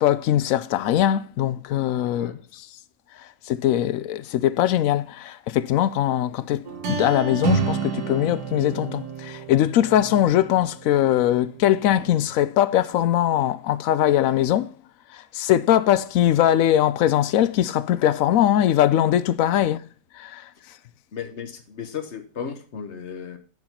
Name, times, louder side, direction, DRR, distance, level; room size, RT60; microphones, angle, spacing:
voice 1, 0.0-2.3 3.5-6.6 6.9-14.7 15.3-19.8 20.2-20.4, left 12 dB, 70° left, 0.9 m, -21 dB
voice 2, 2.0-2.4 21.1-23.4, left 7 dB, 50° left, 1.2 m, -35 dB
sound 1, 6.7-12.3, right 5 dB, 80° right, 1.8 m, -30 dB
9.4 x 4.8 x 5.5 m
omnidirectional pair, 1.7 m